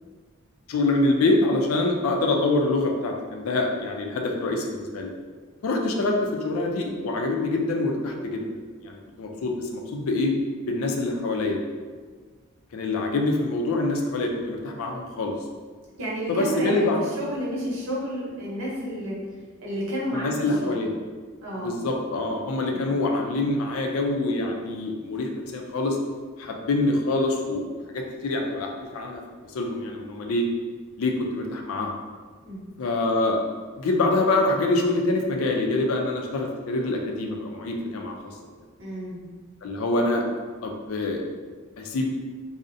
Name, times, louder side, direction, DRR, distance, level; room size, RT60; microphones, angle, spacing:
voice 1, 0.7-5.1 5.6-6.2 6.4-8.4 8.8-10.3 10.7-11.6 12.7-15.3 16.3-17.0 20.1-20.9 21.5-26.0 26.4-29.2 29.5-30.4 31.0-31.9 32.8-33.4 33.8-38.1 39.6-40.2 40.6-41.2 41.8-42.1, left 2 dB, 80° left, 2 dB, 0.4 m, -25 dB
voice 2, 16.0-19.2 19.6-20.3 20.6-20.8 21.4-21.8 22.7-23.0 32.4-32.7 38.8-39.2, equal, 75° right, -5 dB, 0.8 m, -31 dB
2.5 x 2.0 x 2.6 m, 1.5 s
head